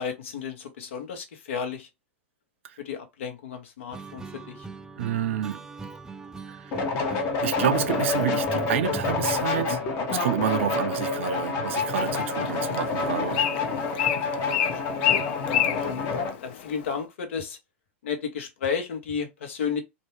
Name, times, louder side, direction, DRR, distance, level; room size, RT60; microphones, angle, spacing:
voice 1, 0.0-1.9 2.8-4.7 14.1-14.4 14.7-15.9 16.4-17.6 18.0-19.8, left 6 dB, 80° left, 0.9 m, -33 dB
sound 1, 3.9-9.4, right 3 dB, 10° right, 0.4 m, -40 dB
voice 2, 5.0-5.6 6.5-6.8 7.0-7.1 7.4-13.5 15.5-15.6, right 10 dB, 75° right, 0.4 m, -29 dB
sound 2, 6.7-16.3, left 4 dB, 40° left, 0.8 m, -28 dB
Bird, 11.8-16.9, left 10 dB, 60° left, 0.5 m, -30 dB
2.6 x 2.2 x 3.0 m
hypercardioid pair, 115°, 7 cm